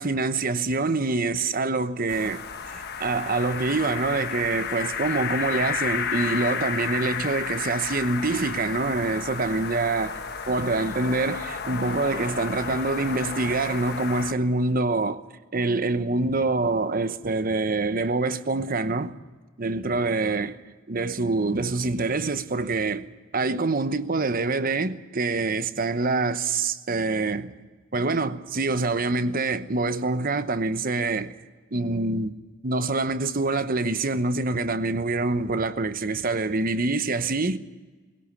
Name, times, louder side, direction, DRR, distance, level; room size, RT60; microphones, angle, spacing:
voice 1, 0.0-2.4 2.7-10.2 10.4-15.2 15.5-19.1 19.6-20.6 20.9-23.1 23.3-27.5 27.9-31.3 31.7-32.3 32.6-37.6, right 3 dB, 45° right, 1.0 m, -25 dB
sound 1, 2.1-14.3, left 6 dB, 55° left, 1.4 m, -32 dB
21.0 x 17.0 x 9.7 m
head